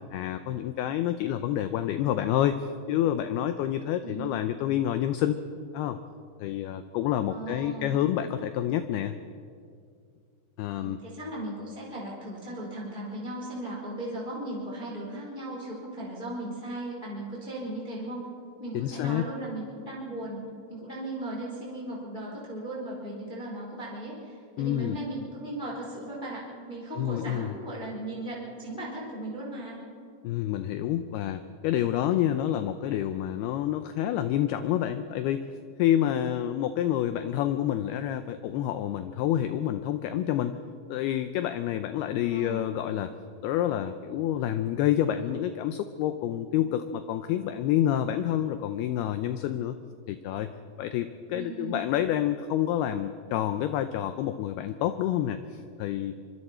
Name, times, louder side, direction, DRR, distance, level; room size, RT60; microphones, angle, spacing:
voice 1, 0.1-5.4 5.7-6.0 6.4-9.2 10.6-11.0 18.7-19.2 24.6-25.0 27.0-27.5 30.2-35.5 35.8-40.6 40.9-43.1 43.4-49.8 50.1-50.5 50.8-56.1, left 11 dB, 85° left, 10 dB, 2.2 m, -28 dB
voice 2, 4.0-4.4 7.3-8.0 10.7-18.3 18.6-20.4 20.7-29.8 42.3-42.8 51.3-51.8, right 1 dB, 10° left, -4 dB, 3.5 m, -37 dB
24.5 x 24.5 x 4.4 m, 2.3 s
omnidirectional pair, 5.3 m